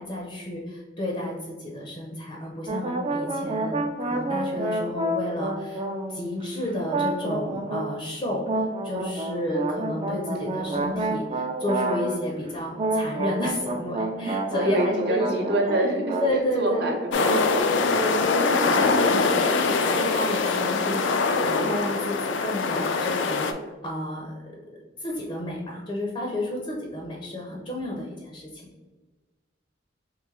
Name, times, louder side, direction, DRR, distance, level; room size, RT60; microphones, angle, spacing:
voice 1, 0.0-5.8 6.1-15.5 15.8-15.9 16.2-17.0 17.7-23.5 23.8-24.3 25.0-28.6, left 1 dB, 30° left, -2 dB, 0.5 m, -31 dB
sound 1, 2.7-6.4 6.9-8.0 8.5-12.4 12.7-16.4 16.6-17.6, right 2 dB, 30° right, 0.4 m, -29 dB
voice 2, 14.6-16.2 16.6-17.7, right 1 dB, 60° right, 3 dB, 0.7 m, -26 dB
sound 2, 17.1-23.5, left 4 dB, 80° left, 0.4 m, -23 dB
3.2 x 3.0 x 3.6 m, 1.3 s
head